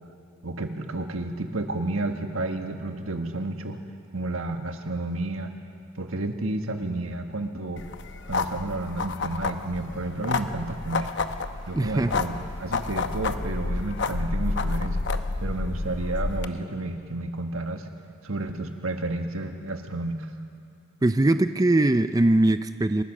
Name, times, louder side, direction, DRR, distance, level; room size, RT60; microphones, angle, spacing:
voice 1, 0.4-3.8 4.1-5.5 5.9-7.8 8.3-11.1 11.7-12.3 12.6-15.0 15.4-17.9 18.2-20.3, right 2 dB, 85° right, 5 dB, 1.6 m, -31 dB
sound 1, 7.8-16.5, left 3 dB, 60° left, 0.8 m, -30 dB
voice 2, 11.7-12.2 21.0-23.0, right 2 dB, 15° right, 10 dB, 0.4 m, -21 dB
27.5 x 15.5 x 6.5 m, 2.4 s
head